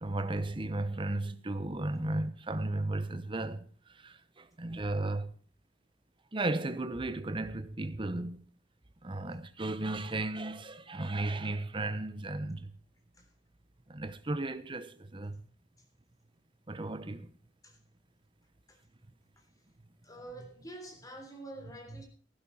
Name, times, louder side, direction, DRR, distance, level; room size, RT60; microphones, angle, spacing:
voice 1, 0.0-3.7 4.0-5.3 6.3-8.4 9.0-12.7 13.9-15.4 16.7-17.3, right 2 dB, 25° right, 0.9 m, -35 dB
voice 2, 20.0-22.1, right 1 dB, 20° left, 3.6 m, -47 dB
15.0 x 12.0 x 4.2 m
head